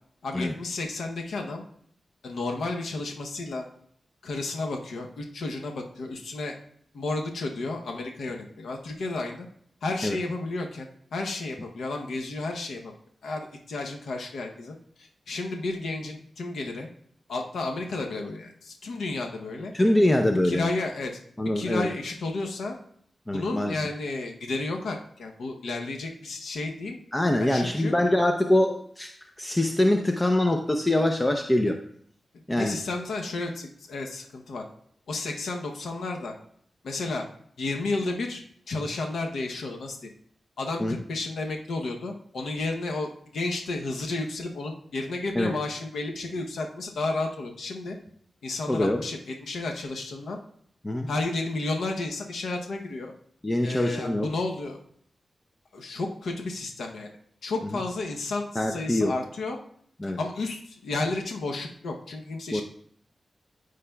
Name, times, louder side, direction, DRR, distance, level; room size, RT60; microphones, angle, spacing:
voice 1, 0.2-1.6 2.2-3.6 4.2-6.6 6.9-9.5 9.8-12.9 13.2-16.9 17.3-19.7 20.4-21.2 21.5-22.8 23.3-27.0 27.4-27.9 32.6-34.6 35.1-36.3 36.8-37.3 37.6-40.1 40.6-48.0 48.4-50.4 51.1-53.1 53.6-54.8 55.7-57.1 57.4-59.6 60.0-62.6, left 2 dB, 85° left, 2 dB, 0.8 m, -32 dB
voice 2, 19.7-20.7 21.4-21.9 23.3-23.8 27.1-29.1 29.4-31.8 32.5-32.8 40.8-40.9 45.4-45.5 48.7-49.0 50.8-51.1 53.4-54.3 58.6-59.1 60.0-60.2 62.5-62.6, left 1 dB, 20° left, 5 dB, 0.6 m, -24 dB
13.0 x 4.9 x 2.3 m, 0.66 s
cardioid pair, 55°, 0 cm